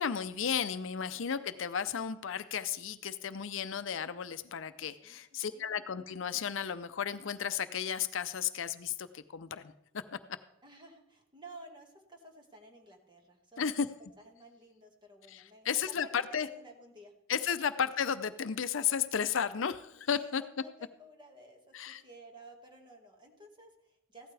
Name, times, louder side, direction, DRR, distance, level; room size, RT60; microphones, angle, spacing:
voice 1, 0.0-10.2 13.6-13.9 15.3-16.5 17.3-20.4 21.7-22.0, left 7 dB, 70° left, 12 dB, 0.6 m, -34 dB
voice 2, 1.2-1.6 4.9-5.7 10.6-13.9 14.2-17.1 20.1-24.3, right 1 dB, 25° right, 2 dB, 1.9 m, -54 dB
15.0 x 12.5 x 3.4 m, 0.82 s
head